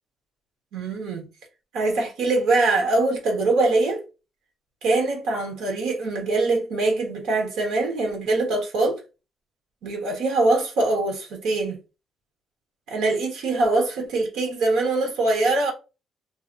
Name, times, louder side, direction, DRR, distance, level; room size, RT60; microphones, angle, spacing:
voice 1, 0.7-1.3 1.7-4.0 4.8-9.0 9.8-11.8 12.9-15.7, right 2 dB, 85° right, 1.1 m, -23 dB
2.9 x 2.1 x 3.8 m
cardioid pair, 90°, 0 cm